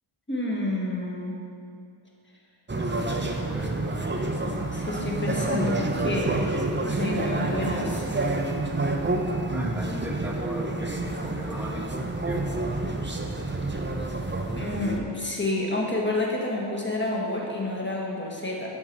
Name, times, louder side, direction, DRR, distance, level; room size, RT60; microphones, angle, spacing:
voice 1, 0.3-1.4 4.7-6.3 6.9-8.0 14.5-18.8, left 2 dB, 25° left, -2 dB, 1.5 m, -29 dB
voice 2, 2.7-3.7 9.5-12.6, equal, 5° right, -2 dB, 1.3 m, -38 dB
sound 1, 2.7-15.0, right 2 dB, 25° right, 0.6 m, -28 dB
7.7 x 4.7 x 6.0 m, 2.4 s
wide cardioid pair, 50°, 47 cm